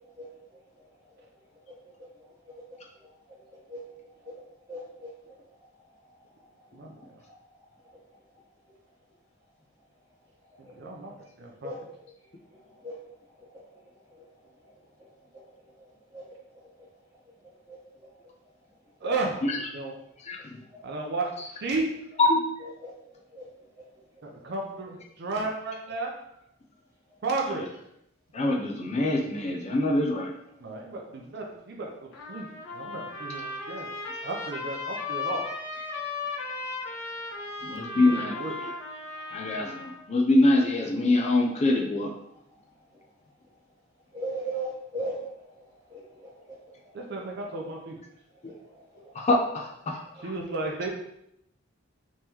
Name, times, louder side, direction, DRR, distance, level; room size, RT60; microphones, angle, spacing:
voice 1, 4.7-5.1 11.6-11.8 12.8-12.9 16.1-16.2 17.7-17.8 22.8-22.9 23.3-23.4 44.1-45.2 45.9-46.0, right 2 dB, 20° right, -7 dB, 1.4 m, -34 dB
voice 2, 10.8-11.1 11.4-11.7 19.0-19.4 19.7-19.9 20.8-21.3 21.6-21.8 24.2-26.1 27.2-27.7 30.6-32.5 32.7-33.9 34.2-35.5 37.9-38.6 46.9-48.0 50.2-50.9, right 3 dB, 60° right, 0 dB, 0.5 m, -33 dB
voice 3, 20.2-20.6 22.2-22.5 27.5-27.6 28.3-30.3 37.6-38.7 39.3-42.1 49.1-50.3, left 2 dB, 35° left, 0 dB, 0.4 m, -25 dB
Trumpet, 32.1-40.0, left 3 dB, 85° left, 0.7 m, -36 dB
3.6 x 3.0 x 2.8 m, 0.79 s
head